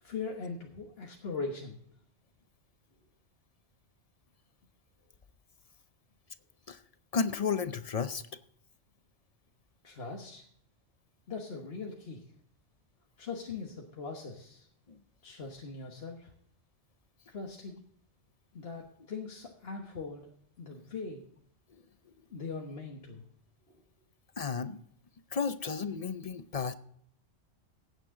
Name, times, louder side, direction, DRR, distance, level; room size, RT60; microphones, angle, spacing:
voice 1, 0.0-1.8 9.8-10.4 11.3-12.3 13.2-14.7 15.2-16.3 17.3-17.8 18.5-21.2 22.3-23.2 23.7-23.8, left 4 dB, 60° left, 0 dB, 1.5 m, -41 dB
voice 2, 7.1-8.2 24.4-24.8 25.3-26.7, left 5 dB, 40° left, 12 dB, 0.6 m, -32 dB
16.0 x 9.1 x 3.7 m, 0.68 s
omnidirectional pair, 1.1 m